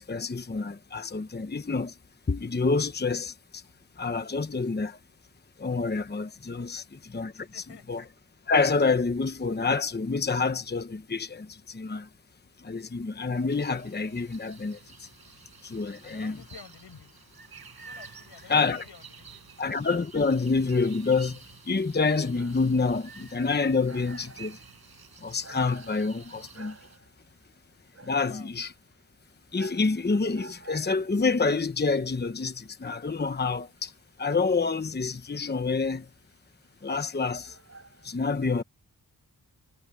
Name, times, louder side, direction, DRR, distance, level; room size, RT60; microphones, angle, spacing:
voice 1, 0.0-2.0 2.3-3.6 4.0-5.0 5.6-8.0 8.5-12.1 12.6-15.1 15.6-16.4 18.5-18.9 19.6-21.4 21.7-24.6 25.2-26.8 28.0-28.7 29.5-33.9 34.2-36.1 36.8-37.6 38.0-38.6, left 4 dB, 25° left, 1.0 m, -27 dB
voice 2, 6.5-6.8 7.3-7.9 16.0-17.1 17.7-19.4 28.1-28.5, left 6 dB, 80° left, 7.2 m, -51 dB
sound 1, 13.5-27.0, right 5 dB, 65° right, 7.4 m, -50 dB
Dog, 22.0-38.1, right 3 dB, 35° right, 7.6 m, -53 dB
wide cardioid pair, 100°, 40 cm